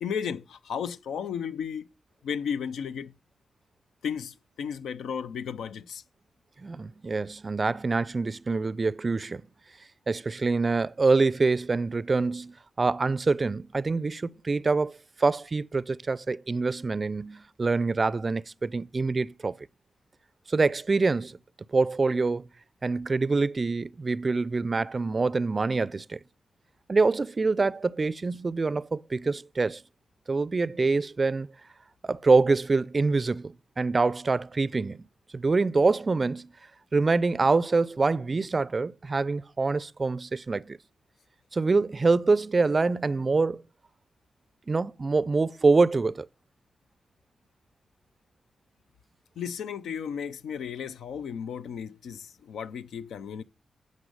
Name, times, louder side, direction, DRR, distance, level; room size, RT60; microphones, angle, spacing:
voice 1, 0.0-1.9 2.2-3.1 4.0-6.0 49.4-53.4, left 7 dB, 80° left, 0.4 m, -34 dB
voice 2, 6.6-9.4 10.1-19.6 20.5-21.4 21.7-22.5 22.8-26.2 26.9-29.8 30.3-31.5 32.0-35.0 35.3-36.5 36.9-40.8 41.5-43.6 44.7-46.3, right 3 dB, 45° right, 0.4 m, -25 dB
9.9 x 5.3 x 5.1 m
supercardioid pair, 40°, 0 cm